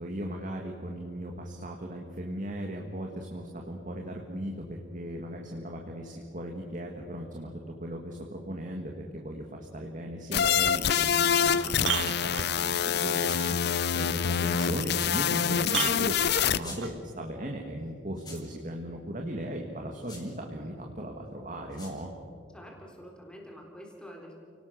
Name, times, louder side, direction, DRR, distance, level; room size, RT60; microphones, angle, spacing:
voice 1, 0.0-13.6 13.9-22.1, right 1 dB, 45° right, 1 dB, 2.0 m, -37 dB
sound 1, 10.3-16.6, left 8 dB, 60° left, 0.6 m, -26 dB
sound 2, 10.8-10.9 11.4-12.9 14.9-15.0 15.7-17.0 18.3-18.4, right 9 dB, 85° right, 1.2 m, -34 dB
sound 3, 13.2-13.9 14.5-15.3 16.2-16.3 16.6-17.0 18.1-18.6 20.0-20.3 21.7-22.0, left 3 dB, 25° left, 4.5 m, -47 dB
voice 2, 22.5-24.4, equal, 5° left, 0 dB, 4.1 m, -47 dB
30.0 x 18.5 x 6.5 m, 2.4 s
head